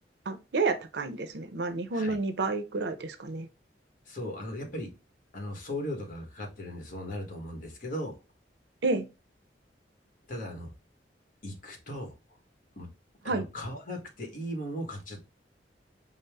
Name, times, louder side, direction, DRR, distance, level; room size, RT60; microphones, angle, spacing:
voice 1, 0.3-3.5 8.8-9.0 13.3-13.5, right 3 dB, 70° right, 0.6 m, -30 dB
voice 2, 4.1-4.9 5.3-8.1 10.3-10.7 11.4-12.1 12.8-12.9 13.2-15.2, equal, 50° left, 1.2 m, -37 dB
5.3 x 2.0 x 3.3 m
head